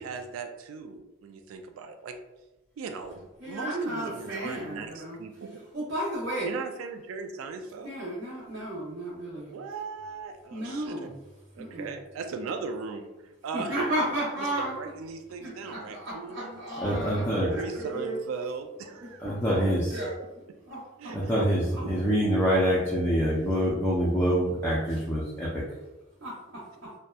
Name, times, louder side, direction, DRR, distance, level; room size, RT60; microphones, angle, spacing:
voice 1, 0.0-2.2 2.8-5.6 6.4-8.0 9.5-11.1 11.5-13.9 14.4-16.6 17.4-19.4 21.0-21.5 21.8-22.2, right 4 dB, 90° right, 6 dB, 0.3 m, -38 dB
voice 2, 3.4-5.2 5.7-6.5 7.8-9.5 10.5-11.1 11.6-11.9 13.5-14.8 15.4-18.2 19.0-20.1 20.7-21.2 21.7-21.8 26.2-26.9, right 1 dB, 55° right, -11 dB, 0.7 m, -34 dB
voice 3, 16.8-17.5 19.2-20.0 21.1-25.6, equal, 10° left, -7 dB, 0.3 m, -25 dB
2.7 x 2.1 x 2.2 m, 1.0 s
head